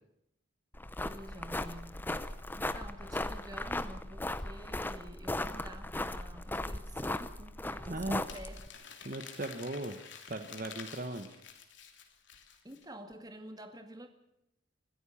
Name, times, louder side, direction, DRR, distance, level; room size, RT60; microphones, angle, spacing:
sound 1, 0.7-8.7, left 1 dB, 10° left, 0.7 m, -37 dB
voice 1, 1.0-2.0 2.5-8.6 12.6-14.1, right 1 dB, 20° right, 7 dB, 2.1 m, -49 dB
voice 2, 7.9-8.2 9.0-10.0 10.3-11.4, right 2 dB, 45° right, 8 dB, 1.1 m, -38 dB
Crumpling crinkling, 8.3-12.8, left 7 dB, 70° left, 3.0 m, -50 dB
25.0 x 15.0 x 7.2 m, 0.82 s
head